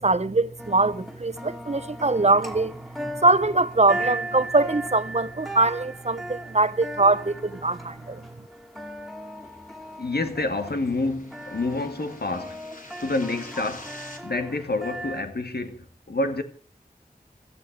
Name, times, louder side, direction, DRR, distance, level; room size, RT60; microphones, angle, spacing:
voice 1, 0.0-8.2, right 2 dB, 45° right, 1.0 m, -23 dB
sound 1, 0.6-15.2, right 1 dB, ahead, 2.4 m, -38 dB
sound 2, 9.7-14.2, left 1 dB, 55° left, 3.8 m, -47 dB
voice 2, 10.0-12.6 13.0-13.9 14.2-16.4, left 2 dB, 90° left, 2.1 m, -28 dB
16.5 x 12.5 x 6.2 m
wide cardioid pair, 45°, 16 cm